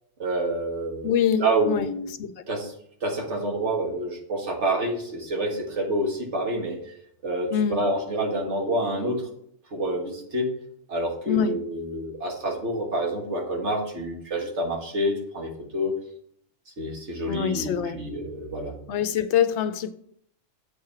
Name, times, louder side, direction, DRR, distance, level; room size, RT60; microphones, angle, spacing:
voice 1, 0.2-1.1 1.4-2.1 2.5-2.7 3.0-6.8 7.2-9.2 9.7-10.5 10.9-15.9 16.8-18.7, right 1 dB, 65° right, 1 dB, 1.9 m, -28 dB
voice 2, 1.0-1.9 2.2-2.3 7.5-7.9 11.3-11.6 17.3-18.0 18.9-19.9, left 8 dB, 70° left, 12 dB, 0.8 m, -24 dB
7.7 x 4.8 x 5.8 m, 0.66 s
omnidirectional pair, 1.3 m